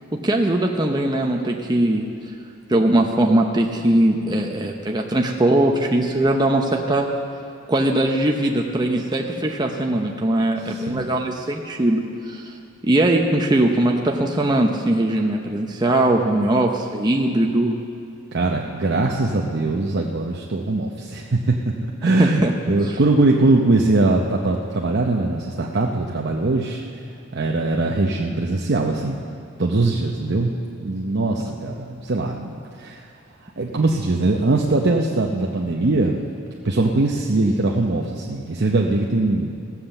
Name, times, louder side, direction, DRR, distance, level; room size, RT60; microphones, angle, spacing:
voice 1, 0.1-2.1 2.7-7.1 7.7-12.5 12.8-17.8 22.2-22.5 22.8-23.0, right 1 dB, 20° right, 1 dB, 0.7 m, -20 dB
voice 2, 10.7-11.1 18.3-21.7 22.0-26.8 27.3-29.2 29.6-30.5 30.8-33.1 33.6-36.2 36.6-39.6, right 2 dB, 55° right, 0 dB, 0.8 m, -21 dB
16.0 x 7.8 x 7.1 m, 2.4 s
head